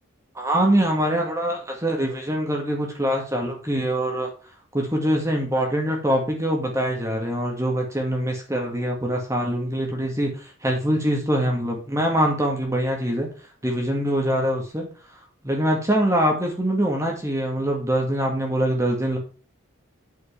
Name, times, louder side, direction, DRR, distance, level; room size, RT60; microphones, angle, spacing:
voice 1, 0.3-4.3 4.7-13.3 13.6-14.9 15.4-19.2, equal, 15° right, 1 dB, 2.1 m, -24 dB
8.6 x 7.8 x 3.5 m, 0.37 s
head